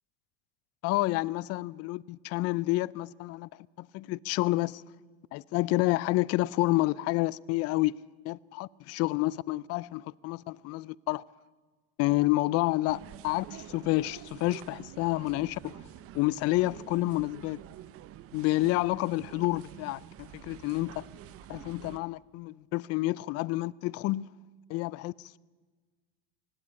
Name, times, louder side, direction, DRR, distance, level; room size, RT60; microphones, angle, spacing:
voice 1, 0.8-4.8 5.3-8.0 8.2-11.2 12.0-15.8 16.1-17.6 18.3-21.1 21.5-24.3 24.7-25.4, left 19 dB, 50° left, 0.5 m, -29 dB
sound 1, 12.9-22.0, right 12 dB, 45° right, 0.8 m, -48 dB
18.0 x 16.5 x 8.7 m
supercardioid pair, 105°, 32 cm